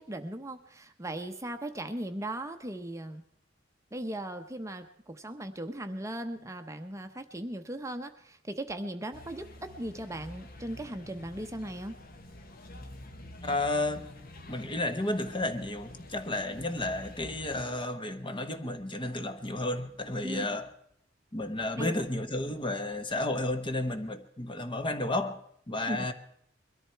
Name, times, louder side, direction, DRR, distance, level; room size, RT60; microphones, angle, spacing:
voice 1, 0.0-3.2 3.9-11.9 20.2-20.5 21.8-21.9 25.9-26.1, right 1 dB, 15° right, 0.8 m, -38 dB
sound 1, 9.1-17.7, left 1 dB, 50° left, 1.3 m, -48 dB
voice 2, 13.4-14.0 14.5-20.7 21.3-26.1, left 2 dB, 25° left, 1.1 m, -32 dB
22.0 x 13.5 x 4.5 m
head